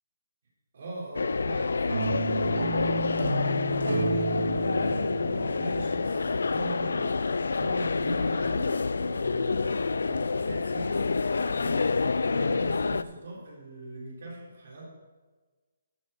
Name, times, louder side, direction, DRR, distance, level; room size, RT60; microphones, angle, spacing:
voice 1, 0.7-11.2 11.5-14.8, right 2 dB, 50° right, -4 dB, 3.9 m, -41 dB
sound 1, 1.1-13.0, left 4 dB, 90° left, 0.5 m, -28 dB
sound 2, 1.9-7.0, right 2 dB, 75° right, 2.0 m, -32 dB
12.5 x 6.6 x 5.7 m, 1.3 s
hypercardioid pair, 175°, 0 cm